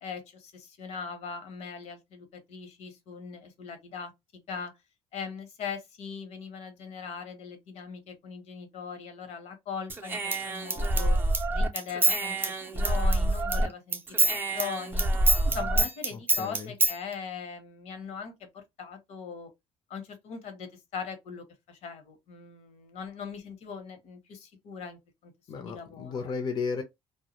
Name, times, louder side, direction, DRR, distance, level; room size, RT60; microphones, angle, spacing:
voice 1, 0.0-4.7 5.1-11.2 11.5-15.1 15.4-19.5 19.9-25.3 25.6-26.3, left 6 dB, 70° left, 0.8 m, -40 dB
Human voice / Scissors, 9.9-13.7 13.9-16.9, right 2 dB, 20° right, 0.4 m, -26 dB
voice 2, 16.1-16.7 25.5-26.8, left 5 dB, 40° left, 0.5 m, -34 dB
2.1 x 2.0 x 2.8 m
cardioid pair, 125°, 12 cm